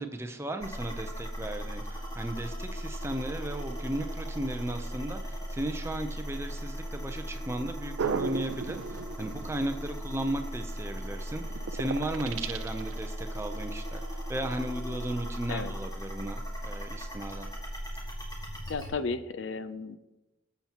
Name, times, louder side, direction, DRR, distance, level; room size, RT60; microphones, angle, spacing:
voice 1, 0.0-11.4 11.7-14.0 14.3-17.5, right 1 dB, 15° right, 6 dB, 0.6 m, -35 dB
sound 1, 0.6-18.9, equal, 20° left, 1.9 m, -37 dB
sound 2, 8.0-10.0 10.6-10.8 11.3-13.0, right 5 dB, 85° right, 0.4 m, -35 dB
voice 2, 18.7-20.0, left 4 dB, 80° left, 13 dB, 0.5 m, -34 dB
18.5 x 7.1 x 3.0 m, 1.1 s
head